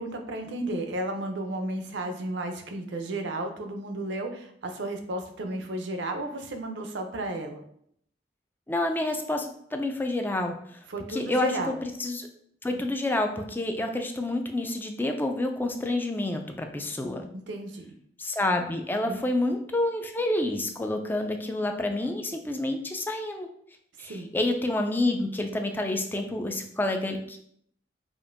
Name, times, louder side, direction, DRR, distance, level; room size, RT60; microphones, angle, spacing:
voice 1, 0.0-7.6 10.9-11.7 17.3-17.9 19.1-19.2 24.0-24.3, right 1 dB, 85° right, 5 dB, 0.6 m, -33 dB
voice 2, 8.7-10.8 11.1-11.5 11.8-12.3 12.6-17.2 18.2-23.5 24.0-27.4, left 2 dB, 10° left, 4 dB, 0.3 m, -28 dB
5.0 x 2.5 x 2.5 m, 0.68 s
head